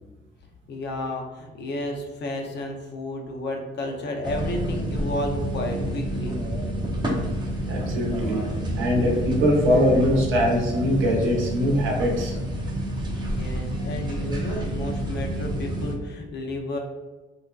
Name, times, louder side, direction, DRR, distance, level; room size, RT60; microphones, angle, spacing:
voice 1, 0.7-6.4 13.3-16.8, left 1 dB, 60° left, 2 dB, 0.6 m, -32 dB
sound 1, 4.2-15.9, right 1 dB, 25° right, 0.5 m, -29 dB
voice 2, 7.6-8.4 8.7-12.3, equal, 80° right, -1 dB, 0.7 m, -22 dB
2.5 x 2.1 x 2.2 m, 1.2 s
cardioid pair, 90°, 20 cm